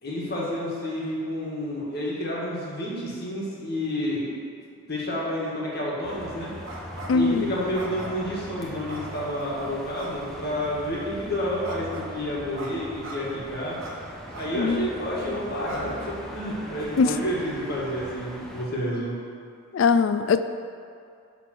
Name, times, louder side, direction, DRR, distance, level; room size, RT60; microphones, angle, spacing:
voice 1, 0.0-4.3 4.9-6.5 7.1-13.8 14.3-19.2, equal, 45° left, -5 dB, 1.9 m, -30 dB
sound 1, 6.0-18.6, equal, ahead, 0.6 m, -41 dB
sound 2, 6.6-7.3 7.7-8.3 8.9-9.5 10.0-10.1 11.6-12.1 12.6-12.7 13.0-13.2 13.8-13.9 14.3-14.5 15.0-15.1 15.6-15.8, right 2 dB, 60° right, 1.3 m, -40 dB
voice 2, 7.1-7.5 14.5-14.9 17.0-17.2 19.7-20.4, left 5 dB, 60° left, 10 dB, 0.3 m, -21 dB
10.0 x 4.0 x 6.1 m, 2.3 s
head